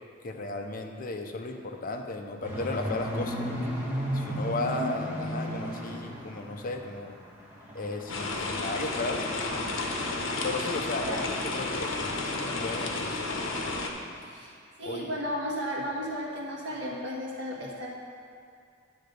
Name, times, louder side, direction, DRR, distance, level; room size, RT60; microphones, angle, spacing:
voice 1, 0.2-3.7 4.1-7.2 7.7-9.2 9.5-9.6 10.4-11.2 11.5-13.2 14.8-15.1, left 2 dB, 45° left, 4 dB, 0.6 m, -35 dB
sound 1, 2.4-7.0 7.4-12.6 12.9-13.1 13.5-13.6 14.0-14.1, equal, 10° right, 1.4 m, -36 dB
sound 2, 8.1-13.9, left 3 dB, 75° left, 0.8 m, -32 dB
voice 2, 14.2-14.5 14.8-17.9, equal, 70° right, -3 dB, 1.6 m, -34 dB
9.5 x 3.9 x 6.6 m, 2.3 s
head